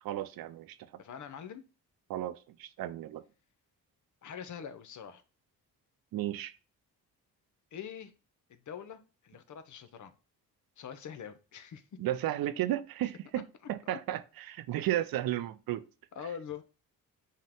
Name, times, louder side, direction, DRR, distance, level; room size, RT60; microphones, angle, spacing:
voice 1, 0.0-0.9 2.1-3.2 6.1-6.6 12.0-15.8, right 13 dB, 70° right, 0.5 m, -34 dB
voice 2, 1.0-1.6 4.2-5.2 7.7-8.1 8.7-10.1 10.8-11.8 13.9-14.0 16.1-16.6, left 8 dB, 55° left, 0.6 m, -44 dB
5.4 x 2.2 x 3.5 m
cardioid pair, 75°, 37 cm